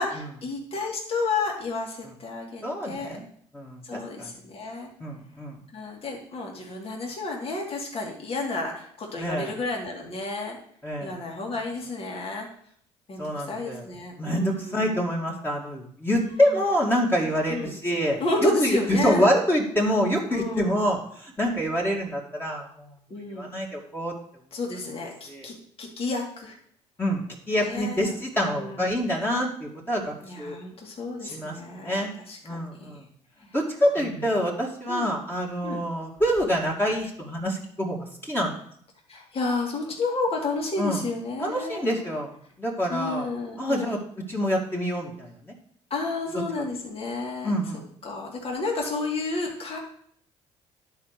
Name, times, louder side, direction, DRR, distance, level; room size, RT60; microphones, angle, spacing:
voice 1, 0.0-3.2 3.8-4.9 5.7-10.6 11.0-12.5 13.1-14.8 16.1-16.6 17.5-17.7 18.2-19.3 20.3-20.8 23.1-23.5 24.5-26.6 27.6-28.9 30.2-32.9 34.0-34.3 34.9-35.1 35.6-35.8 39.1-42.1 42.9-44.0 45.9-47.5 48.0-49.8, left 3 dB, 45° left, -1 dB, 2.5 m, -31 dB
voice 2, 2.6-3.2 3.5-4.3 5.0-5.6 9.2-9.5 10.8-11.2 13.2-13.9 14.2-22.9 23.3-24.1 25.3-25.5 27.0-30.6 31.2-31.6 31.8-32.1 32.4-33.1 33.5-38.5 40.8-41.0 41.4-42.3 42.6-43.3 43.6-44.0 44.3-45.5 47.4-47.9, equal, 15° left, -2 dB, 2.3 m, -26 dB
10.5 x 4.7 x 6.8 m, 0.63 s
supercardioid pair, 80°, 14 cm